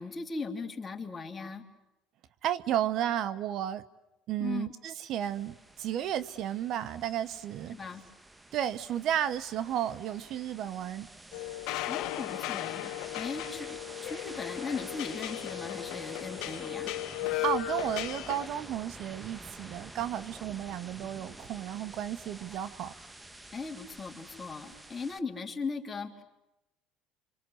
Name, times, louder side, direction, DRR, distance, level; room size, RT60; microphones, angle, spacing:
voice 1, 0.0-1.7 4.4-4.7 7.7-8.0 11.9-16.9 23.5-26.2, left 4 dB, 25° left, 3.5 m, -38 dB
voice 2, 2.4-3.8 4.3-7.8 8.5-11.1 17.4-22.9, right 11 dB, 60° right, 1.1 m, -33 dB
sound 1, 5.2-25.2, right 2 dB, 10° right, 1.4 m, -49 dB
sound 2, 11.3-18.5, left 16 dB, 70° left, 1.2 m, -36 dB
28.5 x 26.0 x 8.0 m
supercardioid pair, 100°, 0 cm